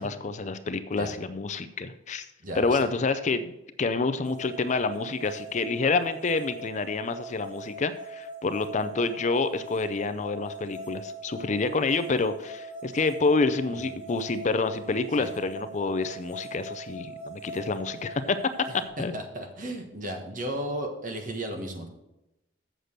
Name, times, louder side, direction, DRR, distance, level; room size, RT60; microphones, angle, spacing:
voice 1, 0.0-2.3 2.6-3.5 3.8-18.4 19.0-19.1, left 3 dB, 40° left, 11 dB, 0.5 m, -28 dB
voice 2, 2.4-2.8 15.2-15.3 18.7-21.9, right 1 dB, 45° right, 4 dB, 1.5 m, -34 dB
sound 1, 4.2-18.9, right 1 dB, 10° right, 2.2 m, -41 dB
7.5 x 6.6 x 6.5 m, 0.92 s
head